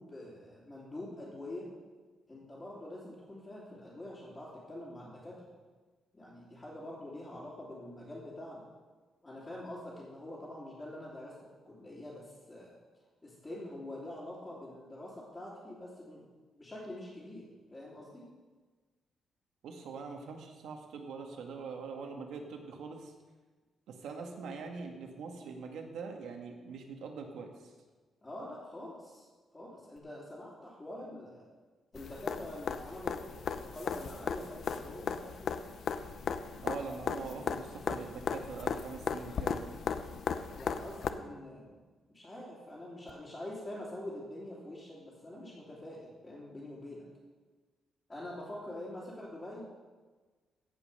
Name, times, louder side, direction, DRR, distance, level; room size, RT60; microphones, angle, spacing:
voice 1, 0.0-1.7 2.3-5.5 6.1-8.7 9.2-12.7 13.2-16.2 16.6-18.3 28.2-29.3 29.5-31.4 31.9-35.5 40.5-41.8 42.1-47.1 48.1-49.7, left 1 dB, 15° left, -9 dB, 2.9 m, -45 dB
voice 2, 19.6-23.1 23.9-27.7 36.6-39.7, right 5 dB, 80° right, 2 dB, 1.9 m, -43 dB
sound 1, 31.9-41.1 43.1-43.2, left 6 dB, 55° left, 0.7 m, -36 dB
16.5 x 5.7 x 6.7 m, 1.3 s
cardioid pair, 155°, 0 cm